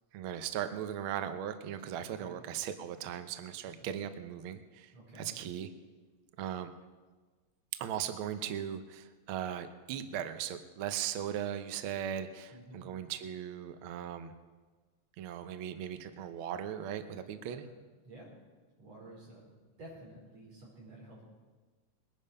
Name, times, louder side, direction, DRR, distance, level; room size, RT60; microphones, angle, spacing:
voice 1, 0.1-4.9 5.2-5.7 6.4-6.7 7.8-14.3 15.2-17.7, right 10 dB, 80° right, 9 dB, 1.1 m, -38 dB
voice 2, 4.9-5.4 12.5-12.9 17.5-17.8 18.0-18.3 18.8-19.5 19.8-21.2, right 1 dB, 55° right, -4 dB, 6.0 m, -51 dB
21.0 x 10.5 x 5.5 m, 1.4 s
omnidirectional pair, 3.4 m